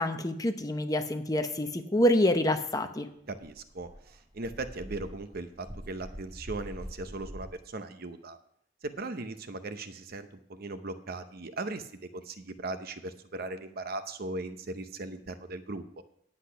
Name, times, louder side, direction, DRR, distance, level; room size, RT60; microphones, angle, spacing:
voice 1, 0.0-3.1, left 1 dB, 20° left, 7 dB, 0.8 m, -27 dB
Dog, 3.3-7.5, equal, 25° right, 1.6 m, -45 dB
voice 2, 3.3-8.4 8.8-16.0, right 2 dB, 55° right, 10 dB, 0.8 m, -38 dB
10.0 x 8.3 x 5.7 m, 0.70 s
head